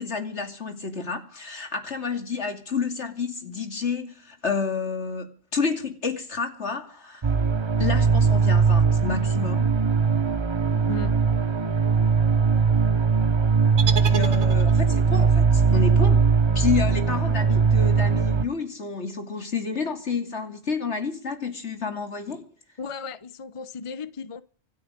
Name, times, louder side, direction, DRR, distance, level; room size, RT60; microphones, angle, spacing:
voice 1, 0.0-7.3 7.8-9.7 14.0-16.3 16.5-22.5, left 5 dB, 75° left, 2.9 m, -30 dB
sound 1, 7.2-18.4, right 5 dB, 30° right, 0.7 m, -20 dB
voice 2, 10.7-11.1 22.8-24.4, left 4 dB, 30° left, 0.8 m, -35 dB
sound 2, 13.8-15.1, right 6 dB, 75° right, 1.5 m, -31 dB
25.5 x 9.3 x 5.2 m
omnidirectional pair, 1.2 m